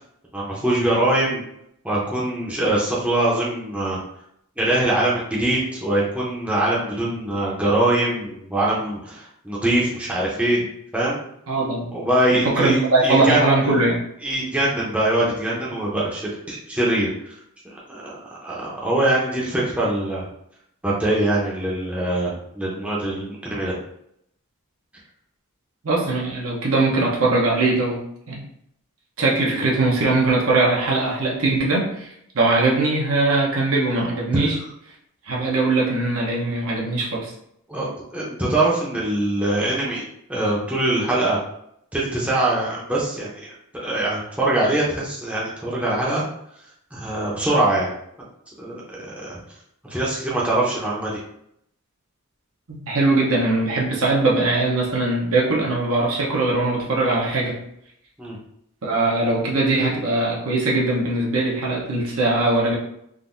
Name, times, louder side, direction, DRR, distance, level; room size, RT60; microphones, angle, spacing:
voice 1, 0.3-1.4 1.8-4.0 4.6-10.6 10.9-11.2 11.9-13.4 14.2-16.2 16.5-17.3 17.9-20.2 20.8-23.7 29.4-29.6 34.4-34.5 37.7-41.4 41.9-43.3 43.8-46.3 46.9-47.9 48.6-49.4 49.9-51.2 58.2-58.4, right 1 dB, 5° right, -6 dB, 0.7 m, -23 dB
voice 2, 11.5-11.9 12.3-14.0 25.8-28.4 29.2-34.6 35.3-37.3 52.7-57.6 58.8-62.8, right 2 dB, 65° right, -3 dB, 0.9 m, -21 dB
3.7 x 2.5 x 2.6 m, 0.73 s
head